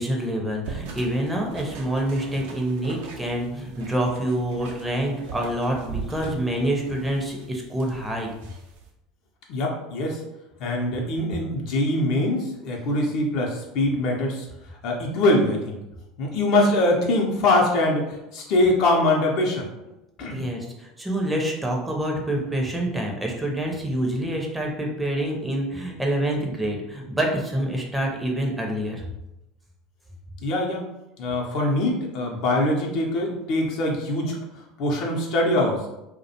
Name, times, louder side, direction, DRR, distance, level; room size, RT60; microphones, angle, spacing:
voice 1, 0.0-8.3 20.3-29.0, right 1 dB, 10° right, 0 dB, 0.5 m, -27 dB
sound 1, 0.6-8.9, right 4 dB, 65° right, 0.4 m, -40 dB
voice 2, 9.5-10.2 10.6-14.5 14.8-15.8 16.2-19.7 20.2-20.5 30.4-30.9 31.2-34.4 34.8-35.8, left 1 dB, 55° left, 0 dB, 0.5 m, -23 dB
2.3 x 2.1 x 2.7 m, 0.92 s
hypercardioid pair, 75°, 0 cm